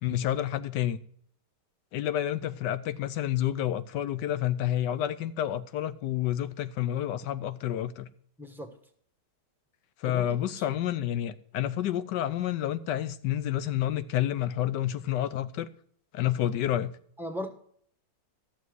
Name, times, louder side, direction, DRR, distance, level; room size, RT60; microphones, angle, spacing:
voice 1, 0.0-1.0 1.9-8.1 10.0-15.7 16.1-16.9, left 12 dB, 90° left, 1.3 m, -29 dB
voice 2, 8.4-8.8 10.0-10.7 17.2-17.5, equal, ahead, 0.8 m, -38 dB
13.5 x 7.0 x 4.6 m
omnidirectional pair, 1.8 m